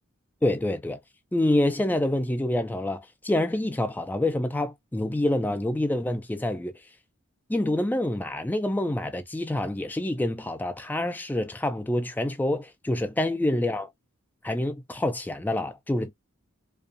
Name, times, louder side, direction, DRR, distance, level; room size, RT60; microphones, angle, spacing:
voice 1, 0.4-1.0 1.3-6.8 7.5-13.9 14.4-16.1, left 1 dB, 10° left, 0.3 m, -27 dB
2.5 x 2.3 x 2.4 m
head